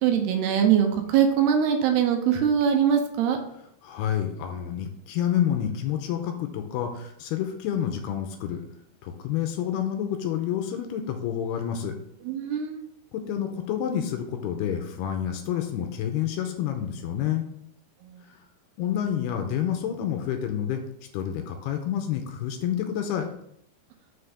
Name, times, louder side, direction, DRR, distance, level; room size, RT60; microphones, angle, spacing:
voice 1, 0.0-3.4 12.3-12.8 18.0-18.2, right 8 dB, 75° right, 5 dB, 2.7 m, -22 dB
voice 2, 3.8-8.6 9.0-11.9 13.1-17.5 18.3-18.4 18.8-20.8 21.1-23.3, left 9 dB, 80° left, 5 dB, 2.6 m, -28 dB
6.6 x 4.8 x 5.0 m, 0.73 s
omnidirectional pair, 4.9 m